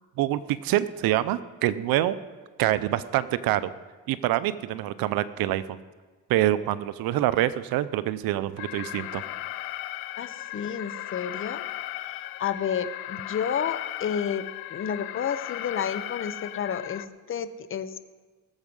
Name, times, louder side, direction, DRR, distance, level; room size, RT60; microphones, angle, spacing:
voice 1, 0.2-2.1 2.6-3.7 4.1-5.8 6.3-9.2, right 14 dB, 75° right, 15 dB, 0.7 m, -26 dB
Alarm, 8.6-17.1, left 15 dB, 80° left, 0.6 m, -36 dB
voice 2, 10.2-11.6 12.1-14.4 14.7-18.0, left 8 dB, 35° left, 12 dB, 0.8 m, -31 dB
19.5 x 7.3 x 5.4 m, 1.4 s
cardioid pair, 110°, 35 cm